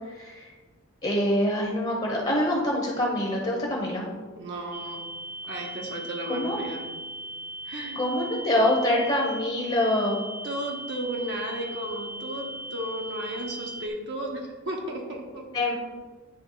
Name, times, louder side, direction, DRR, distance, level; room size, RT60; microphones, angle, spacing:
voice 1, 0.1-0.5 1.0-4.1 6.3-6.6 7.9-10.2 15.5-15.7, left 1 dB, 30° left, -2 dB, 1.0 m, -25 dB
voice 2, 4.4-5.0 5.4-6.8 7.6-8.0 10.4-15.4, right 1 dB, 60° right, 0 dB, 1.0 m, -34 dB
sound 1, 4.7-13.9, right 1 dB, 10° right, 0.3 m, -38 dB
9.5 x 3.4 x 3.9 m, 1.4 s
head